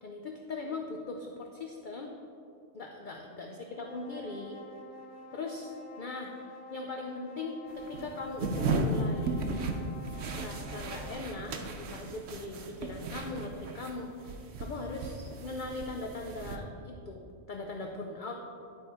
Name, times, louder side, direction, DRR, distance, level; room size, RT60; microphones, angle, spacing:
voice 1, 0.0-2.1 2.7-4.6 5.3-9.8 10.3-18.4, left 3 dB, 50° left, 2 dB, 0.6 m, -40 dB
sound 1, 3.7-11.1, left 1 dB, 70° left, 1.3 m, -49 dB
sound 2, 7.7-13.9 14.2-16.6, right 2 dB, 75° right, 1.1 m, -35 dB
11.5 x 4.4 x 4.8 m, 2.5 s
omnidirectional pair, 1.3 m